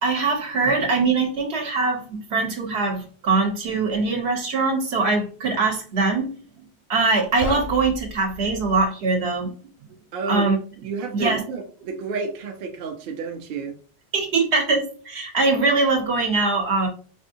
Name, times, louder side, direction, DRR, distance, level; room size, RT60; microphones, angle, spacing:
voice 1, 0.0-6.3 6.9-9.5 10.3-10.6 11.1-11.4 14.1-16.9, right 3 dB, 80° right, 3 dB, 1.1 m, -22 dB
sound 1, 7.3-8.9, left 3 dB, 90° left, 1.0 m, -34 dB
voice 2, 10.1-10.5 10.8-13.8, right 4 dB, 60° right, 4 dB, 0.7 m, -30 dB
4.3 x 2.6 x 2.6 m, 0.42 s
omnidirectional pair, 1.1 m